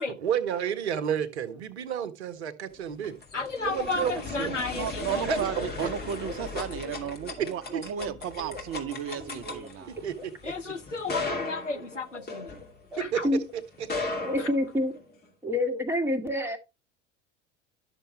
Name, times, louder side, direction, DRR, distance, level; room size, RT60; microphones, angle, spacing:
voice 1, 0.2-3.2 3.7-4.6 5.2-5.9 7.4-7.9 10.0-10.7 13.0-13.2, right 8 dB, 65° right, 1.1 m, -31 dB
sound 1, 2.8-13.1 13.7-15.2, left 3 dB, 25° left, 2.6 m, -37 dB
voice 2, 3.3-5.3 10.4-12.6 12.9-13.3 14.4-14.5, left 3 dB, 85° left, 0.9 m, -33 dB
voice 3, 4.7-10.0, right 9 dB, 40° right, 1.1 m, -34 dB
voice 4, 5.2-6.6 7.2-7.3 8.4-8.6 9.2-9.9 12.1-12.2 12.9-13.4 14.2-14.9 15.4-16.6, left 1 dB, 5° right, 1.7 m, -30 dB
11.5 x 6.8 x 3.1 m
figure-of-eight pair, 70°, 35 cm